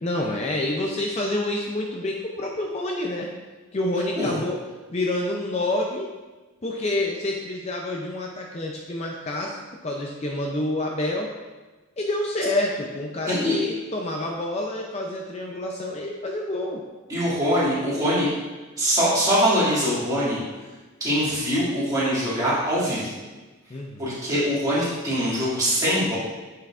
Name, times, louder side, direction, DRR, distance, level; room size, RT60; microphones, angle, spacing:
voice 1, 0.0-3.3 3.7-4.6 4.9-6.1 6.6-9.6 9.8-11.3 12.0-16.8 23.7-24.2, left 1 dB, 30° left, 0 dB, 0.5 m, -28 dB
voice 2, 17.1-18.3 18.8-20.4 21.0-23.1 24.0-26.2, equal, 15° right, -9 dB, 2.2 m, -23 dB
8.8 x 5.7 x 2.5 m, 1.2 s
head